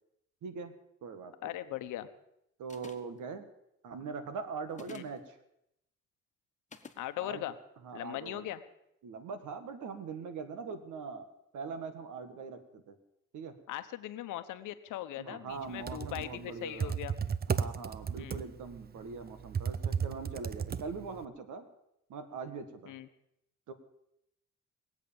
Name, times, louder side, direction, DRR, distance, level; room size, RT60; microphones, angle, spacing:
voice 1, 0.4-1.5 2.6-3.5 3.8-5.4 7.2-7.4 7.8-8.5 9.0-11.3 11.5-13.0 13.3-13.6 15.2-16.9 17.6-21.7 22.1-22.9 23.7-23.8, right 5 dB, 80° right, 9 dB, 1.9 m, -42 dB
voice 2, 1.4-2.1 4.9-5.0 7.0-7.5 7.9-8.6 13.7-17.1 18.2-18.4 22.9-23.1, left 14 dB, 90° left, 11 dB, 1.0 m, -39 dB
sound 1, 2.7-3.2 4.7-5.2 6.7-7.0, left 4 dB, 25° left, 1.4 m, -50 dB
Computer keyboard, 15.6-21.2, right 6 dB, 30° right, 0.7 m, -34 dB
20.5 x 8.3 x 7.1 m, 0.80 s
cardioid pair, 90°, 30 cm